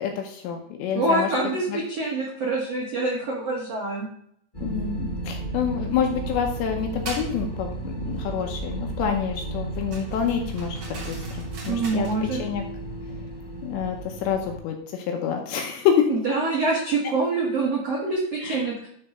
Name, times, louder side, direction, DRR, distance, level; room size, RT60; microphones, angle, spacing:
voice 1, 0.0-1.3 1.7-1.8 4.6-11.2 11.7-12.6 13.6-16.1 18.4-18.6, left 8 dB, 75° left, 3 dB, 2.7 m, -27 dB
voice 2, 0.9-4.1 11.7-12.4 16.1-18.9, right 3 dB, 85° right, -3 dB, 1.3 m, -25 dB
sound 1, 4.5-14.6, right 2 dB, 55° left, 0.5 m, -33 dB
sound 2, 7.0-7.3 9.9-12.2, right 3 dB, 45° right, 2.6 m, -40 dB
12.0 x 4.0 x 5.4 m, 0.70 s
omnidirectional pair, 5.8 m